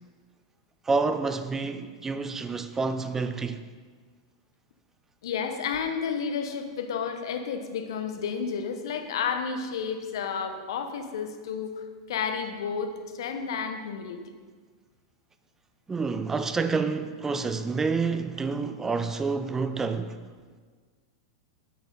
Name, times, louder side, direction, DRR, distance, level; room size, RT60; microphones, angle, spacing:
voice 1, 0.9-3.6 15.9-20.2, right 4 dB, 15° right, 0.5 m, -28 dB
voice 2, 5.2-11.7 12.1-14.2, left 6 dB, 70° left, 1.0 m, -31 dB
10.0 x 8.1 x 3.9 m
hypercardioid pair, 110°, 3 cm